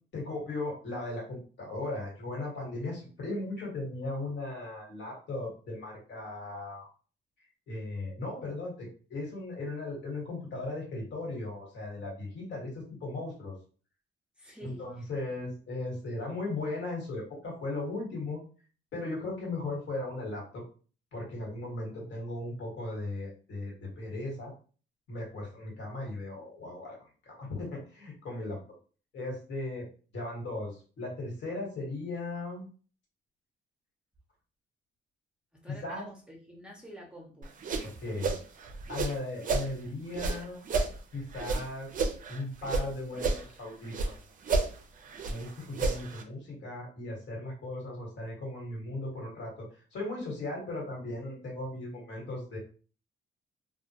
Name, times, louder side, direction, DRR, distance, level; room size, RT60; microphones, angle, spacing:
voice 1, 0.1-6.9 7.7-13.5 14.6-18.4 18.9-20.6 21.1-24.5 25.1-27.0 27.3-28.6 29.1-29.9 30.1-32.7 35.8-36.1 38.0-38.4 38.9-40.6 41.1-41.9 42.3-44.1 45.3-52.6, left 2 dB, 65° left, -2 dB, 1.3 m, -37 dB
voice 2, 14.4-15.4 35.6-37.5, equal, 5° right, -1 dB, 0.7 m, -49 dB
sound 1, 37.4-39.7 40.1-42.9 43.1-44.1 44.4-46.2, right 3 dB, 45° right, 0.5 m, -31 dB
2.1 x 2.1 x 2.8 m, 0.39 s
cardioid pair, 90°, 20 cm